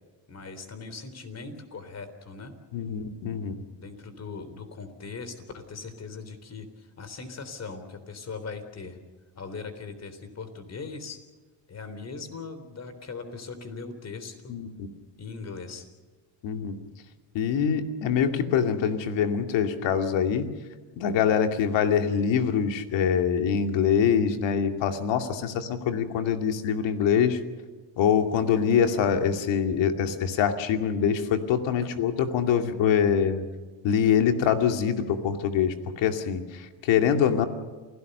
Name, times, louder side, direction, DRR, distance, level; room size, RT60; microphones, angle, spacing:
voice 1, 0.3-2.5 3.8-9.0 9.3-11.2 11.7-14.5 15.2-15.9, left 4 dB, 35° left, 10 dB, 3.6 m, -40 dB
voice 2, 2.7-3.6 14.5-14.9 16.4-16.8 17.3-20.5 21.0-27.4 28.0-33.4 33.8-37.5, left 7 dB, 80° left, 6 dB, 2.5 m, -24 dB
28.0 x 17.5 x 6.8 m, 1.4 s
cardioid pair, 125°, 44 cm